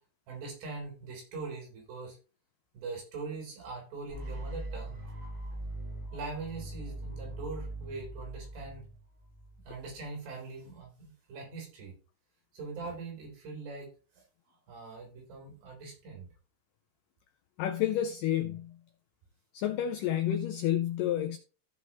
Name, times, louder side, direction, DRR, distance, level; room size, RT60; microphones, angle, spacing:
voice 1, 0.3-2.2 2.7-5.0 6.1-8.9 9.7-11.9 12.5-13.9 14.7-16.3, right 4 dB, 80° right, 5.9 m, -42 dB
sound 1, 4.1-10.0, right 1 dB, 45° right, 5.2 m, -41 dB
voice 2, 17.6-18.8 19.5-21.4, left 11 dB, 90° left, 1.9 m, -30 dB
14.5 x 5.2 x 3.1 m
omnidirectional pair, 4.7 m